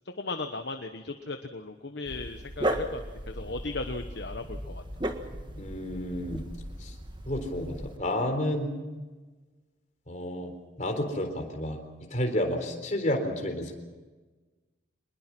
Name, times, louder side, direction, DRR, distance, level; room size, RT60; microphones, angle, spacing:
voice 1, 0.2-4.8, left 3 dB, 60° left, 6 dB, 1.2 m, -37 dB
Dog, 2.1-8.0, right 1 dB, 25° right, 1.7 m, -36 dB
voice 2, 5.6-6.4 6.8-6.9 7.3-8.7 10.1-10.5 10.8-11.8 12.1-13.7, left 1 dB, 35° left, 4 dB, 3.9 m, -30 dB
26.0 x 21.0 x 6.1 m, 1.3 s
head